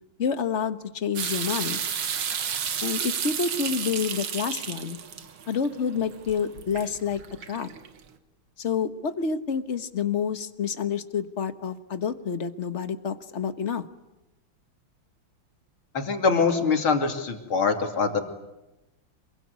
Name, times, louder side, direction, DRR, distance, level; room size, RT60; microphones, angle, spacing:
voice 1, 0.2-1.8 2.8-5.0 5.5-7.2 7.5-7.7 8.6-13.8, left 6 dB, 40° left, 11 dB, 1.4 m, -28 dB
sound 1, 1.2-8.0, right 8 dB, 75° right, 2.3 m, -32 dB
voice 2, 15.9-18.2, left 5 dB, 80° left, 5 dB, 3.7 m, -23 dB
27.0 x 23.0 x 9.6 m, 0.97 s
omnidirectional pair, 2.3 m